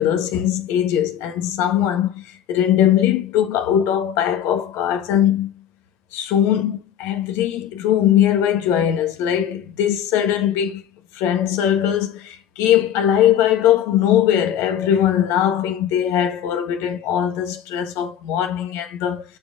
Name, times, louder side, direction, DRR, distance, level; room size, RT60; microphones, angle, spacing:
voice 1, 0.0-5.5 6.1-10.8 11.1-19.2, left 10 dB, 50° left, 1.4 m, -20 dB
13.5 x 5.1 x 2.5 m
figure-of-eight pair, 70°, 6 cm